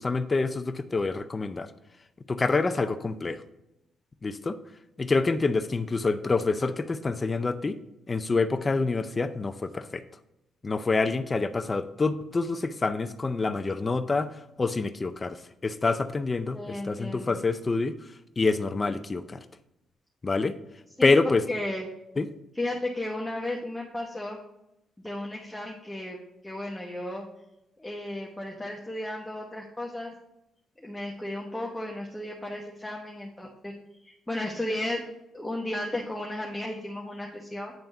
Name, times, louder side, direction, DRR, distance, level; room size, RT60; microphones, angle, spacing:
voice 1, 0.0-1.7 2.3-3.4 4.2-4.6 5.0-7.8 8.1-10.0 10.6-14.3 14.6-17.9 18.4-19.4 20.2-20.6 21.0-21.4 22.2-22.3, left 3 dB, 25° left, 11 dB, 0.5 m, -26 dB
voice 2, 16.5-17.4 21.0-21.1 21.5-21.9 22.5-24.4 25.0-26.2 26.4-27.2 27.8-30.1 30.8-33.7 34.0-35.0 35.3-37.7, left 1 dB, 10° left, -1 dB, 0.9 m, -34 dB
9.1 x 3.4 x 5.4 m, 0.87 s
cardioid pair, 90°, 0 cm